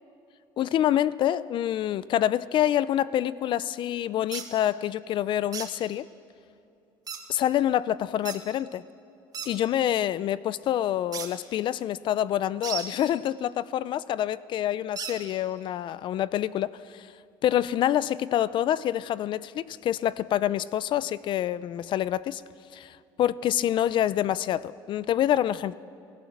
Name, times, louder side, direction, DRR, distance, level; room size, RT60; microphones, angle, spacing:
voice 1, 0.6-6.0 7.3-8.8 9.5-17.1 17.4-22.4 22.7-25.8, left 11 dB, 55° left, 18 dB, 0.5 m, -27 dB
sound 1, 4.3-4.5 5.5-5.7 7.1-7.2 8.2-8.4 9.3-9.5 11.1-11.3 12.6-12.9 15.0-15.2, right 7 dB, 40° right, 2.6 m, -34 dB
28.0 x 15.5 x 7.3 m, 2.7 s
cardioid pair, 105°, 10 cm